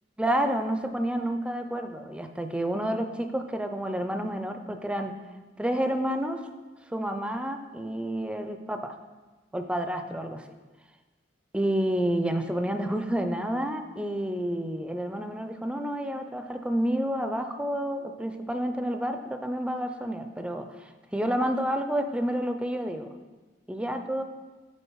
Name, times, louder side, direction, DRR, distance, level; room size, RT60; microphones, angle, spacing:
voice 1, 0.2-5.1 5.6-6.4 6.9-8.9 9.5-10.4 11.5-23.1 23.7-24.2, right 1 dB, 5° right, 7 dB, 0.4 m, -29 dB
6.5 x 4.6 x 4.6 m, 1.2 s
head